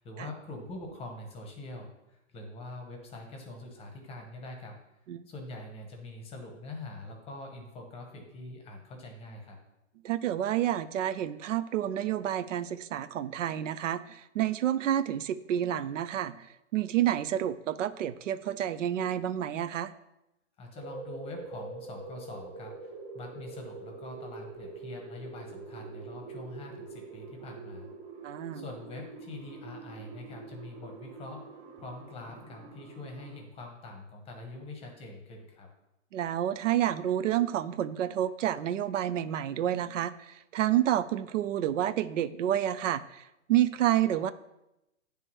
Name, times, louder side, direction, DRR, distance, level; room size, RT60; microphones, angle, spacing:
voice 1, 0.0-4.8 5.3-9.6 20.6-27.9 28.5-31.4 31.8-35.7, left 2 dB, 15° left, 3 dB, 0.9 m, -44 dB
voice 2, 10.0-16.5 16.7-19.9 28.2-28.6 36.1-43.2 43.5-44.3, right 11 dB, 85° right, 13 dB, 0.5 m, -29 dB
sound 1, 20.8-33.4, right 3 dB, 35° right, 0.9 m, -45 dB
9.4 x 3.4 x 3.0 m, 0.90 s
hypercardioid pair, 140°, 37 cm